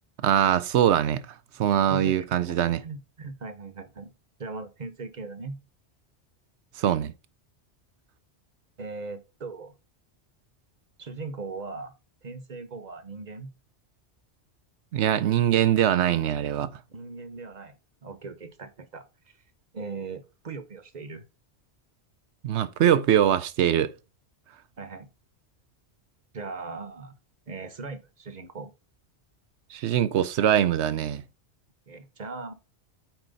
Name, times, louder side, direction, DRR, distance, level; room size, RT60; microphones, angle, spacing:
voice 1, 0.2-1.2 1.6-2.8 6.8-7.1 14.9-16.7 22.4-23.9 29.7-31.2, right 10 dB, 80° right, 0.9 m, -22 dB
voice 2, 1.9-2.6 2.8-4.1 4.4-5.6 8.8-9.7 11.0-11.9 12.2-13.5 16.9-17.7 18.0-19.1 19.7-21.2 24.8-25.1 26.3-27.2 27.5-28.7 31.9-32.5, right 3 dB, 40° right, 1.0 m, -39 dB
9.1 x 4.4 x 4.0 m
omnidirectional pair, 1.2 m